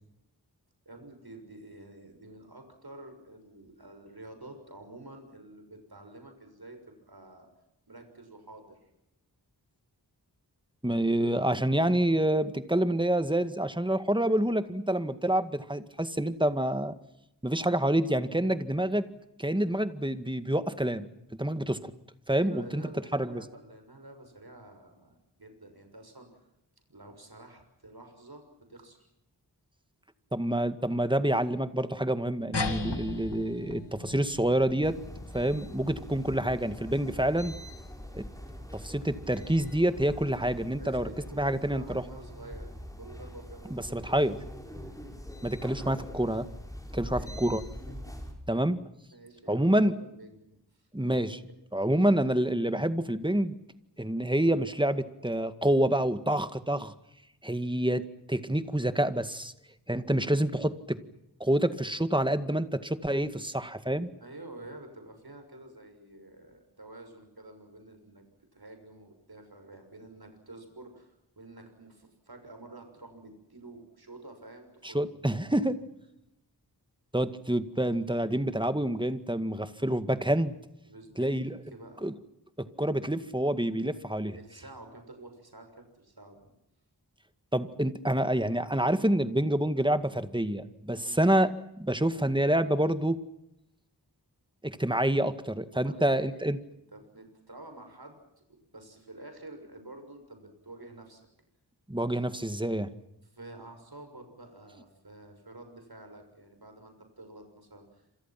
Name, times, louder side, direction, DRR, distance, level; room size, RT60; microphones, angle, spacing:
voice 1, 0.8-7.5 7.9-8.9 22.4-26.3 26.9-29.1 40.8-44.3 47.0-48.2 49.1-50.9 51.1-51.3 64.2-68.2 68.5-75.2 80.9-82.1 84.3-86.5 90.9-91.2 95.7-98.2 98.5-101.2 103.2-108.0, right 2 dB, 65° right, 6 dB, 6.5 m, -49 dB
voice 2, 10.8-16.9 17.4-19.1 19.4-21.1 21.4-21.9 22.3-22.8 23.1-23.4 30.3-35.0 35.3-37.5 38.1-38.2 38.7-41.1 41.4-42.0 43.7-44.4 45.4-46.5 46.9-47.6 48.5-48.8 49.5-49.9 50.9-51.4 51.7-53.6 54.0-56.9 57.4-58.0 58.3-59.5 59.9-61.0 61.4-64.1 74.8-75.8 77.1-80.5 81.2-81.6 82.0-82.1 82.6-84.4 87.5-91.5 91.8-93.2 94.6-96.6 101.9-102.9, right 1 dB, 10° right, 10 dB, 2.0 m, -27 dB
sound 1, 32.5-37.4, left 3 dB, 85° left, 2.3 m, -38 dB
sound 2, 34.8-48.3, equal, 10° left, 6.0 m, -43 dB
28.5 x 27.0 x 6.0 m, 0.86 s
wide cardioid pair, 50°, 40 cm